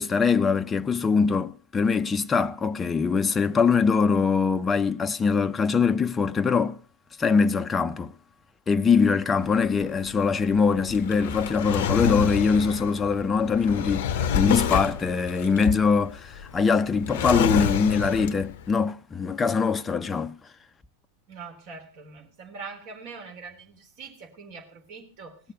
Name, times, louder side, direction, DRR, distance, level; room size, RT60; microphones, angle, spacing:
voice 1, 0.0-6.8 7.2-8.1 8.7-20.4, left 5 dB, 15° left, 0.8 m, -23 dB
Drawer open or close, 9.3-18.6, left 8 dB, 50° left, 0.8 m, -29 dB
voice 2, 21.3-25.4, right 4 dB, 45° right, 3.7 m, -43 dB
18.5 x 6.7 x 6.7 m
figure-of-eight pair, 90°, 0 cm